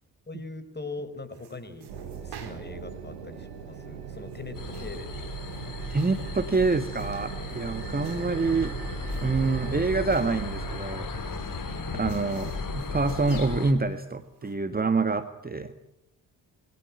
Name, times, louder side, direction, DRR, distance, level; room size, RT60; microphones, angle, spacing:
voice 1, 0.3-1.9 2.2-5.1 12.2-12.3, left 3 dB, 20° left, 12 dB, 5.0 m, -41 dB
sound 1, 1.3-14.5, right 6 dB, 55° right, 4.6 m, -50 dB
sound 2, 1.9-10.8, right 8 dB, 80° right, 3.6 m, -39 dB
sound 3, 4.5-13.7, left 4 dB, 40° left, 5.8 m, -36 dB
voice 2, 5.9-8.7 9.2-11.1 11.9-15.7, right 3 dB, 20° right, 9 dB, 1.8 m, -26 dB
27.0 x 22.5 x 9.2 m, 0.80 s
figure-of-eight pair, 45°, 48 cm